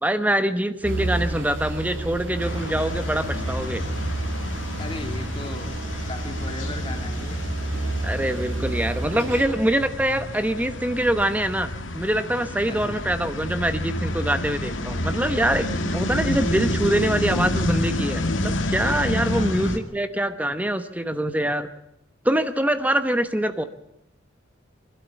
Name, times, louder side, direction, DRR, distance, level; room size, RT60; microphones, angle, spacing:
voice 1, 0.0-3.8 8.0-21.7 22.2-23.6, right 1 dB, 10° right, 10 dB, 1.0 m, -24 dB
sound 1, 0.8-9.5, right 1 dB, 85° right, 6.6 m, -30 dB
sound 2, 2.4-19.8, left 1 dB, 90° left, 2.1 m, -29 dB
voice 2, 4.8-5.7 6.1-7.4 12.7-13.1 19.3-19.6, left 1 dB, 30° left, 4 dB, 2.5 m, -36 dB
25.0 x 12.5 x 8.4 m, 0.82 s
head